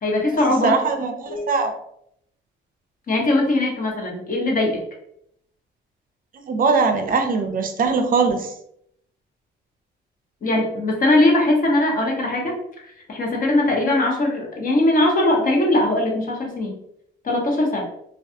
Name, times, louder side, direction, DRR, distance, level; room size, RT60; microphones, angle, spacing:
voice 1, 0.0-0.8 1.3-1.5 3.1-4.8 10.4-16.8 17.2-17.8, left 1 dB, 45° left, 0 dB, 0.9 m, -20 dB
voice 2, 0.6-1.7 6.5-8.5, right 4 dB, 45° right, 5 dB, 0.5 m, -21 dB
2.3 x 2.3 x 2.6 m, 0.74 s
cardioid pair, 90°, 20 cm